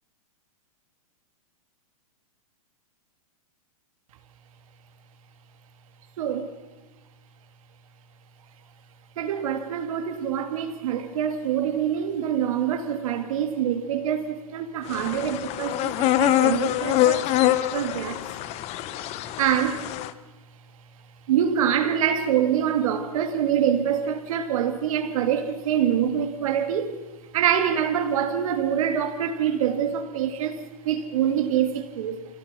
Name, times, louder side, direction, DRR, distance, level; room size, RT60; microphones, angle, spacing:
voice 1, 6.2-6.5 9.2-18.2 19.4-19.8 21.3-27.0 27.3-32.2, right 9 dB, 60° right, 2.4 m, -25 dB
sound 1, 14.9-20.1, left 14 dB, 35° left, 1.0 m, -24 dB
25.0 x 17.5 x 7.5 m
hypercardioid pair, 120°, 20 cm